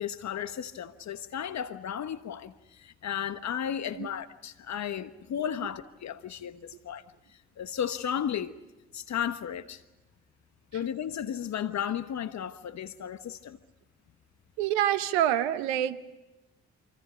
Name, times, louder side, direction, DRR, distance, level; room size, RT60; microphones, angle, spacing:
voice 1, 0.0-7.0 7.6-8.6 8.9-9.8 10.7-13.6, left 9 dB, 60° left, 1.3 m, -34 dB
voice 2, 14.6-16.0, right 11 dB, 85° right, 1.1 m, -26 dB
28.0 x 25.5 x 5.2 m
hypercardioid pair, 40°, 32 cm